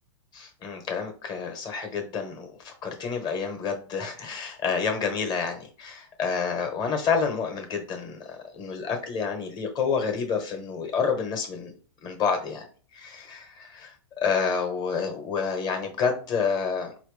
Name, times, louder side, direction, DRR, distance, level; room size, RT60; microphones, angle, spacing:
voice 1, 0.3-11.7 12.0-12.7 12.9-16.9, left 5 dB, 30° left, 4 dB, 1.2 m, -29 dB
4.6 x 2.9 x 3.3 m, 0.40 s
hypercardioid pair, 135°, 15 cm